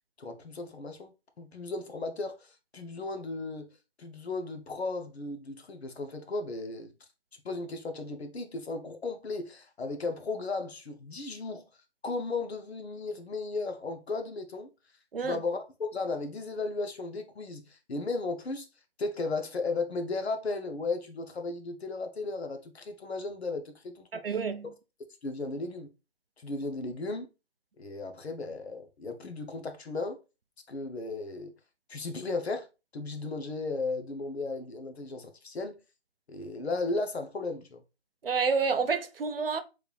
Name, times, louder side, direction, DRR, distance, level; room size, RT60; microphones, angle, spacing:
voice 1, 0.2-1.1 1.4-3.7 4.0-6.9 7.4-11.6 12.0-14.7 15.2-18.7 19.0-24.4 25.2-25.9 26.4-27.3 27.8-30.2 30.7-31.5 31.9-32.7 32.9-35.8 36.3-37.8, left 3 dB, 75° left, 0.8 m, -35 dB
voice 2, 24.1-24.6 38.2-39.6, right 5 dB, 60° right, 0.5 m, -29 dB
3.3 x 2.4 x 3.1 m
hypercardioid pair, 180°, 32 cm